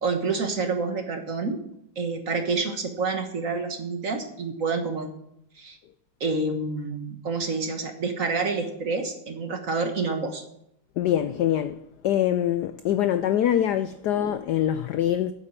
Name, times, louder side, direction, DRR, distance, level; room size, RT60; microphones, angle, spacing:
voice 1, 0.0-1.6 2.0-5.1 5.6-5.8 6.2-10.4, right 4 dB, 45° right, 1.4 m, -28 dB
voice 2, 11.0-11.8 12.0-15.3, left 11 dB, 85° left, 0.9 m, -24 dB
8.9 x 8.3 x 7.2 m
omnidirectional pair, 2.3 m